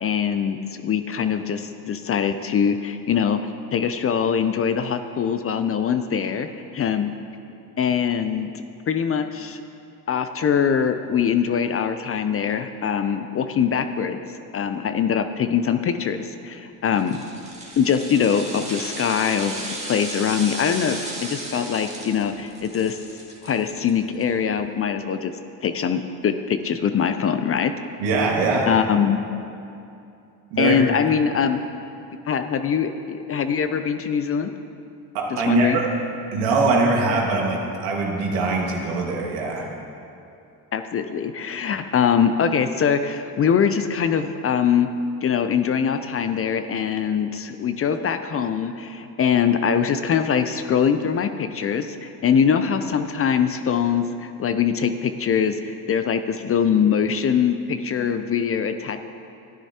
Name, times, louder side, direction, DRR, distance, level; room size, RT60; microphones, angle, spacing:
voice 1, 0.0-3.4 3.7-7.1 7.8-8.5 8.9-9.6 10.1-14.2 14.5-17.2 17.8-23.0 23.4-25.3 25.6-27.7 28.7-29.2 30.6-31.7 32.3-34.5 35.3-35.8 40.7-44.9 45.2-59.0, left 7 dB, 30° left, 9 dB, 0.5 m, -23 dB
sound 1, 16.9-24.2 24.6-24.7, right 2 dB, 15° right, 2.1 m, -35 dB
voice 2, 28.0-28.7 30.5-30.8 35.1-35.7 36.3-39.7, right 3 dB, 75° right, -1 dB, 1.9 m, -22 dB
13.0 x 9.9 x 2.9 m, 2.7 s
hypercardioid pair, 70°, 46 cm